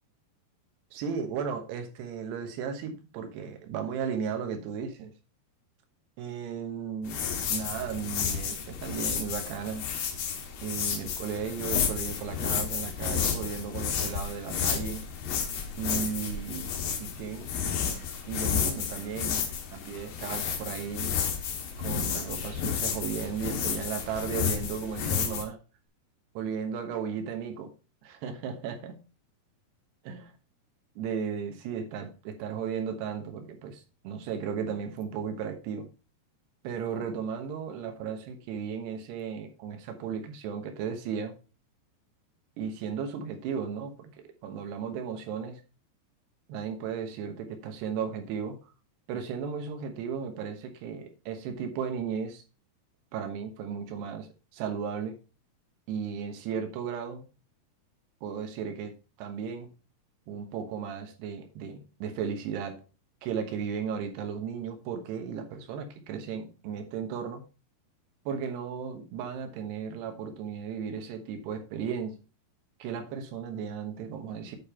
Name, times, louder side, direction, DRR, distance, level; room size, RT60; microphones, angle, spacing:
voice 1, 0.9-5.1 6.2-7.2 7.5-9.8 10.6-15.1 15.8-16.7 17.0-17.5 18.3-19.4 19.7-21.1 21.8-25.6 26.3-27.7 28.0-29.0 30.0-30.3 31.0-35.9 36.6-41.3 42.6-44.1 44.4-45.6 46.5-48.6 49.1-52.4 53.1-55.2 55.9-57.2 58.2-58.9 59.2-59.7 60.3-62.8 63.2-67.4 68.3-72.2 72.8-74.6, right 7 dB, 80° right, 6 dB, 3.3 m, -35 dB
sound 1, 7.0-25.4, left 7 dB, 70° left, 3.0 m, -31 dB
8.9 x 5.3 x 4.3 m, 0.32 s
omnidirectional pair, 4.7 m